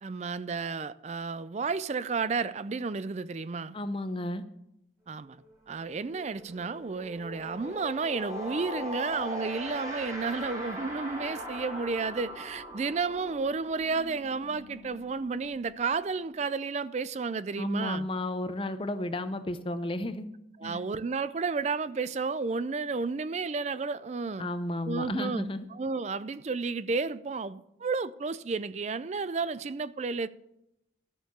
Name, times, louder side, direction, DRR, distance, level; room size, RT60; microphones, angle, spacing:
voice 1, 0.0-3.8 5.1-5.4 5.7-18.1 20.6-24.5 24.9-30.3, right 4 dB, 35° right, 0.4 m, -32 dB
voice 2, 3.7-4.4 17.6-20.3 20.6-20.8 24.4-25.7, left 1 dB, 25° left, 0.6 m, -33 dB
sound 1, 5.3-5.5 5.8-16.4, left 1 dB, 20° right, 2.4 m, -41 dB
13.0 x 6.5 x 6.6 m
head